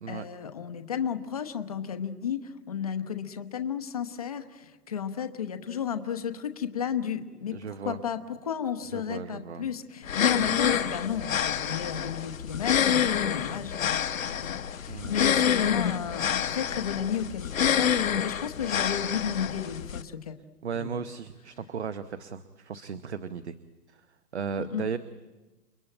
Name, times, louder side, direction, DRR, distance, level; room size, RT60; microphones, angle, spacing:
voice 1, 0.1-7.6 7.8-20.4 20.8-20.9 24.6-24.8, left 8 dB, 25° left, 8 dB, 0.9 m, -33 dB
voice 2, 7.5-8.0 8.9-9.7 14.9-15.4 20.6-23.5 23.9-24.1 24.3-25.0, right 6 dB, 40° right, 12 dB, 0.9 m, -36 dB
sound 1, 10.0-20.0, left 8 dB, 55° left, 1.1 m, -27 dB
29.5 x 21.5 x 9.0 m, 1.2 s
hypercardioid pair, 175°, 49 cm